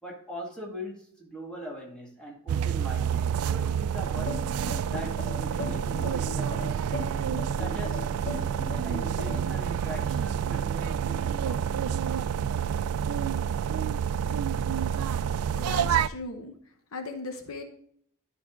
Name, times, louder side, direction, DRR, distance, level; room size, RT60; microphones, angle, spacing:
voice 1, 0.0-4.4 4.9-7.0 7.6-8.0 8.8-12.4, equal, 5° left, -3 dB, 1.9 m, -41 dB
sound 1, 2.5-16.1, right 8 dB, 80° right, 0.3 m, -28 dB
sound 2, 4.3-9.5, left 2 dB, 35° left, 3.8 m, -37 dB
voice 2, 15.5-16.5 16.9-17.6, left 3 dB, 65° left, 6 dB, 0.9 m, -37 dB
12.0 x 4.6 x 3.6 m, 0.63 s
head